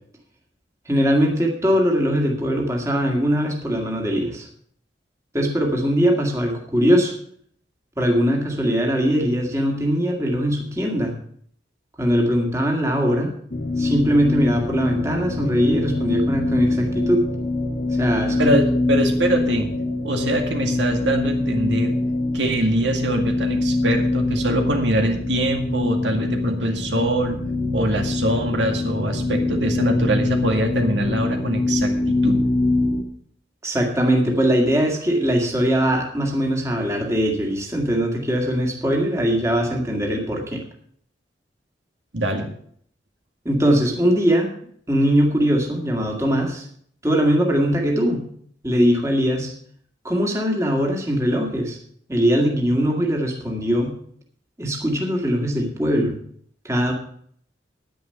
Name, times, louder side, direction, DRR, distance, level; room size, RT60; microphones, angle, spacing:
voice 1, 0.9-4.5 5.3-7.1 8.0-11.2 12.0-13.3 13.8-17.3 17.9-18.6 33.6-40.6 43.5-44.5 44.9-46.7 47.0-48.3 48.6-49.5 50.0-51.8 52.1-54.0 54.6-56.2 56.6-56.9, equal, 15° right, 0 dB, 2.0 m, -21 dB
sound 1, 13.5-33.0, left 2 dB, 50° left, 1.3 m, -24 dB
voice 2, 18.4-19.7 20.0-22.0 22.3-27.4 27.7-32.4 42.1-42.5, right 1 dB, 80° right, 3 dB, 2.0 m, -23 dB
10.0 x 10.0 x 5.6 m, 0.62 s
head